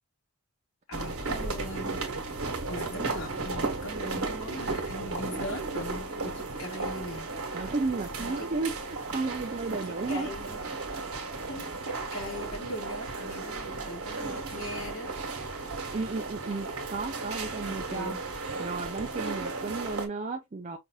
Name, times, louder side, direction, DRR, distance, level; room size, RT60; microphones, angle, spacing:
voice 1, 0.9-2.0 2.7-7.3 7.5-7.7 8.2-8.3 9.8-10.6 11.5-15.1 17.9-18.2, left 1 dB, 70° left, 2.4 m, -40 dB
sound 1, 0.9-20.1, right 3 dB, 75° right, 1.2 m, -35 dB
voice 2, 7.5-10.3 15.9-18.2 18.6-20.8, right 3 dB, 35° right, 0.4 m, -33 dB
5.4 x 2.5 x 2.2 m
head